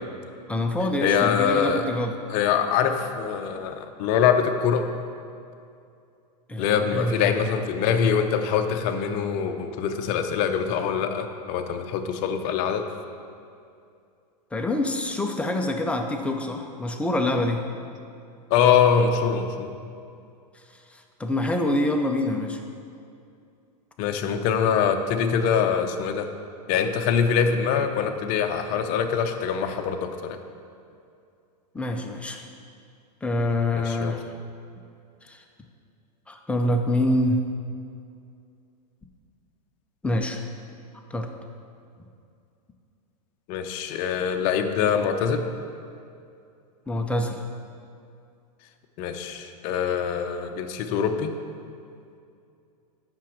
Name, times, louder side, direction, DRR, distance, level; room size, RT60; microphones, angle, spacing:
voice 1, 0.5-2.2 6.5-7.3 14.5-17.6 20.9-22.6 31.7-32.5 33.2-34.3 35.2-35.4 36.3-37.4 40.0-40.4 41.1-41.3 46.9-47.4, left 1 dB, 5° left, 3 dB, 0.4 m, -26 dB
voice 2, 1.0-1.8 2.3-4.9 6.6-12.9 18.5-19.7 24.0-26.3 26.7-30.4 33.7-34.1 43.5-45.5 49.0-51.3, left 7 dB, 40° left, 6 dB, 0.7 m, -24 dB
7.6 x 6.0 x 7.3 m, 2.5 s
supercardioid pair, 145°, 21 cm